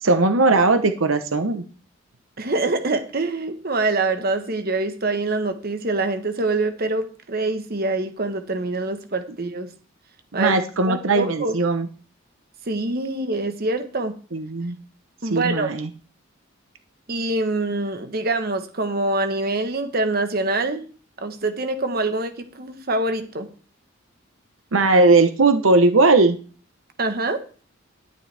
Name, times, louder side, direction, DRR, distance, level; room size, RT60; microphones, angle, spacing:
voice 1, 0.0-1.6 10.3-11.9 14.3-14.8 15.3-15.9 24.7-26.4, right 3 dB, 75° right, 8 dB, 0.9 m, -18 dB
voice 2, 2.4-9.7 10.3-10.6 10.9-11.5 12.7-14.1 15.2-15.7 17.1-20.8 21.2-23.5 27.0-27.4, right 2 dB, 45° right, 8 dB, 1.2 m, -25 dB
11.5 x 10.0 x 3.4 m, 0.38 s
head